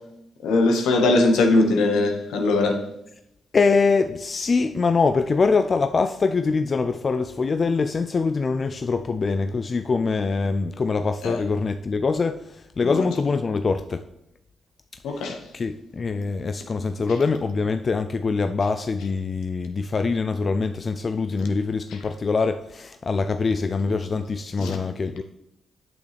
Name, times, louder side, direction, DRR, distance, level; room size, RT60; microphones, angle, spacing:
voice 1, 0.4-2.8 11.2-11.4 12.8-13.1 15.0-15.4 24.6-24.8, left 2 dB, 85° left, 4 dB, 1.1 m, -20 dB
voice 2, 3.5-14.0 15.1-25.2, left 4 dB, 45° left, 9 dB, 0.4 m, -24 dB
8.3 x 6.7 x 3.4 m, 0.83 s
supercardioid pair, 55°, 0 cm